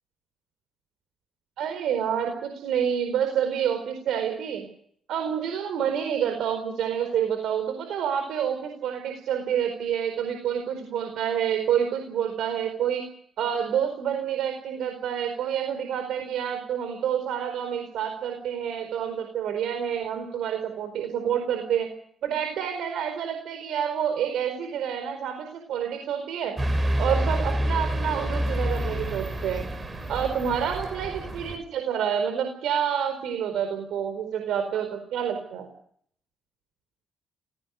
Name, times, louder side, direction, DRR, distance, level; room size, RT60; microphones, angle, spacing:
voice 1, 1.6-4.7 5.1-13.0 13.4-21.9 22.2-26.5 27.0-29.7 30.1-35.7, right 8 dB, 80° right, 6 dB, 4.6 m, -28 dB
sound 1, 26.6-31.6, right 1 dB, 25° right, 7.1 m, -28 dB
28.0 x 17.5 x 6.8 m, 0.65 s
cardioid pair, 90°, 0 cm